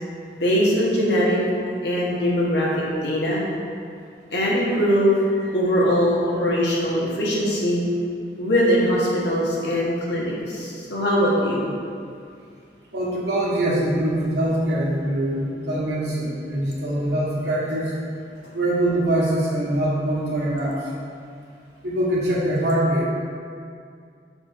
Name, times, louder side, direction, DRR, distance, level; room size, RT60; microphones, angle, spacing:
voice 1, 0.3-1.4 1.8-3.4 4.3-7.8 8.4-11.6, equal, 75° left, -5 dB, 1.4 m, -21 dB
voice 2, 12.9-17.9 18.5-20.8 21.8-23.1, right 1 dB, 75° right, -5 dB, 1.5 m, -23 dB
6.1 x 4.3 x 4.3 m, 2.3 s
head